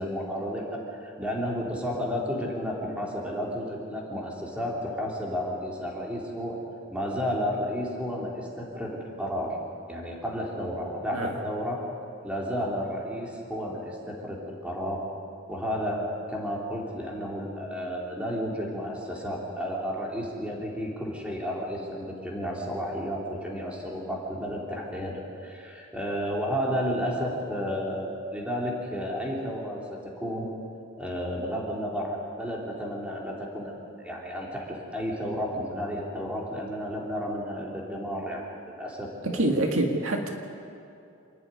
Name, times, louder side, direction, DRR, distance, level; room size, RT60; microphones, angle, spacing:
voice 1, 0.0-6.6 6.9-9.6 9.9-11.8 12.2-15.0 15.5-30.5 31.0-39.5, equal, 5° right, -2 dB, 3.2 m, -32 dB
voice 2, 39.2-40.3, right 1 dB, 75° right, 3 dB, 2.0 m, -26 dB
27.5 x 10.5 x 9.7 m, 2.6 s
head